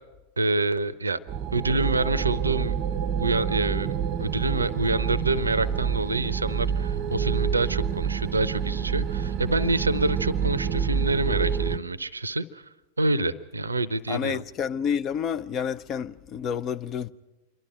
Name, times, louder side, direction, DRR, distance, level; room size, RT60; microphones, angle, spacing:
voice 1, 0.4-1.2 1.5-2.7 3.2-12.6 13.0-14.4, right 2 dB, 80° right, 0.6 m, -27 dB
sound 1, 1.3-11.8, right 7 dB, 40° right, 0.6 m, -28 dB
voice 2, 14.1-17.1, left 7 dB, 30° left, 0.6 m, -29 dB
26.5 x 12.0 x 9.2 m
figure-of-eight pair, 90°, 0 cm